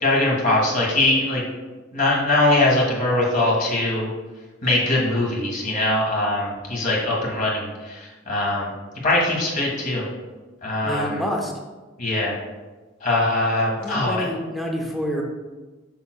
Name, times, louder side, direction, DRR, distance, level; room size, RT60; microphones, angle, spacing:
voice 1, 0.0-1.4 1.9-4.1 4.6-8.7 9.0-10.1 10.6-11.2 12.0-12.3 13.0-14.3, left 2 dB, 45° left, -3 dB, 1.8 m, -21 dB
voice 2, 10.8-11.5 13.8-15.2, equal, ahead, 0 dB, 0.9 m, -27 dB
6.9 x 6.1 x 2.3 m, 1.2 s
head